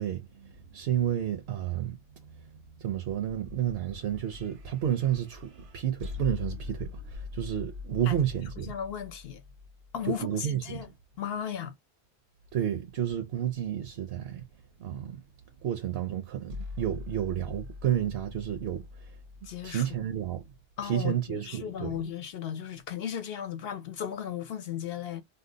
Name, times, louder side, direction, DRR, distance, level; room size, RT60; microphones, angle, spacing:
voice 1, 0.0-2.0 2.8-8.7 10.1-10.8 12.5-14.4 14.8-15.2 15.6-18.8 19.6-20.4 20.8-22.1, right 10 dB, 65° right, 0.8 m, -31 dB
sound 1, 2.9-10.2 16.5-20.6, left 4 dB, 85° right, 1.2 m, -43 dB
voice 2, 8.6-9.4 9.9-10.9 11.2-11.7 19.4-20.0 20.8-25.2, left 9 dB, 65° left, 0.8 m, -36 dB
2.7 x 2.0 x 3.7 m
omnidirectional pair, 1.1 m